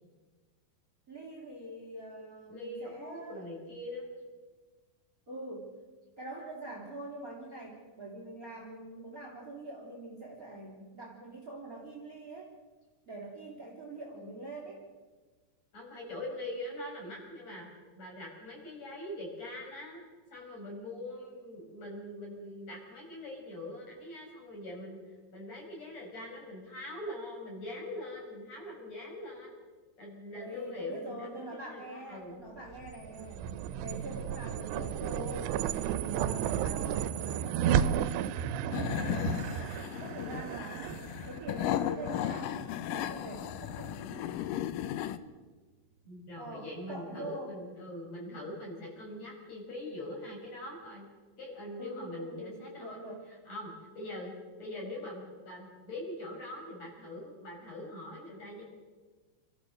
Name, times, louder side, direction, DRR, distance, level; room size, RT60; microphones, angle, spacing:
voice 1, 1.1-3.4 5.3-5.7 6.2-12.5 13.1-14.8 30.4-33.5 33.8-35.6 36.0-38.2 38.7-42.6 42.9-44.3 46.4-47.5 51.8-53.3, right 1 dB, 25° right, -1 dB, 3.1 m, -44 dB
voice 2, 2.5-4.1 15.7-17.7 17.9-20.0 20.3-25.0 25.3-29.6 30.0-32.4 46.0-51.1 51.4-54.3 54.6-58.6, left 1 dB, 40° left, -1 dB, 6.7 m, -42 dB
sound 1, 32.7-43.2, right 9 dB, 85° right, 2.9 m, -33 dB
sound 2, 38.7-45.2, left 11 dB, 80° left, 2.0 m, -35 dB
28.5 x 14.5 x 6.6 m, 1.3 s
omnidirectional pair, 4.7 m